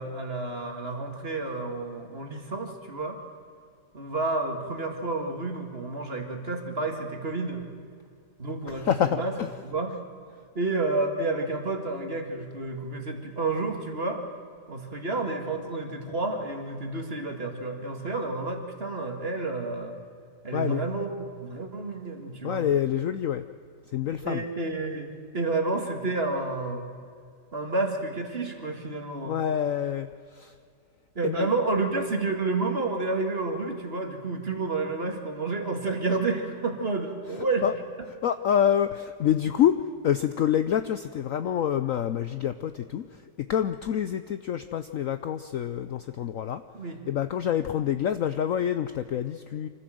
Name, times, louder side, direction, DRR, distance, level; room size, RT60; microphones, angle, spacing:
voice 1, 0.0-3.2 3.9-7.7 8.4-9.3 9.6-10.0 10.6-14.2 14.7-20.0 20.4-22.7 24.2-26.9 27.5-29.4 31.2-37.7 46.7-47.0, right 3 dB, 35° right, 4 dB, 2.2 m, -30 dB
voice 2, 8.7-9.5 20.5-20.8 22.4-23.4 23.9-24.4 29.2-30.1 30.4-30.5 31.2-31.5 37.6-37.7 38.1-39.8 40.0-43.0 43.4-46.6 47.1-49.7, left 9 dB, 65° left, 11 dB, 0.8 m, -27 dB
24.5 x 15.5 x 7.8 m, 2.3 s
omnidirectional pair, 1.9 m